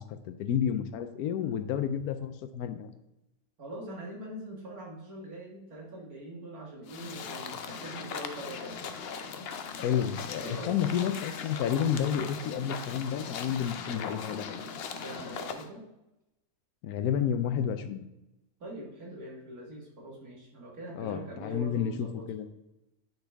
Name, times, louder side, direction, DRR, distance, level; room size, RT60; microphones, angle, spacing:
voice 1, 0.0-2.9 9.8-14.6 16.8-18.1 20.9-22.5, left 8 dB, 90° left, 10 dB, 1.1 m, -31 dB
voice 2, 3.6-8.8 10.4-10.7 14.9-15.8 18.6-22.3, right 1 dB, 80° right, -2 dB, 2.2 m, -43 dB
sound 1, 6.9-15.7, left 6 dB, 60° left, 0.6 m, -39 dB
9.0 x 4.0 x 3.4 m, 0.93 s
omnidirectional pair, 1.6 m